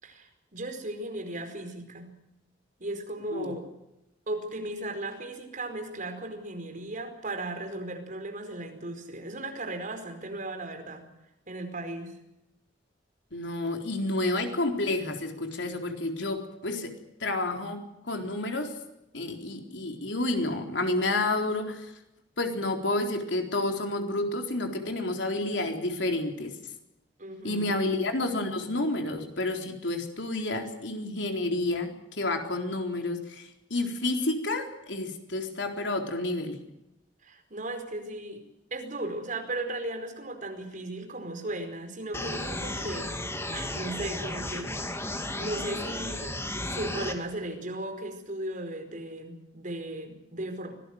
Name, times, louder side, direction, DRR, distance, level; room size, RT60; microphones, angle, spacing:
voice 1, 0.0-2.1 2.8-3.7 4.3-11.1 11.5-12.2 27.2-27.9 37.2-38.4 38.7-43.1 43.5-45.0 45.4-46.3 46.7-50.7, right 2 dB, 45° right, 6 dB, 4.8 m, -36 dB
voice 2, 13.3-16.9 17.2-18.7 19.1-21.9 22.4-26.6 27.4-36.6, left 2 dB, 75° left, 4 dB, 4.1 m, -30 dB
sound 1, 42.1-47.1, left 1 dB, 15° left, 2.5 m, -34 dB
25.0 x 18.5 x 7.9 m, 0.89 s
head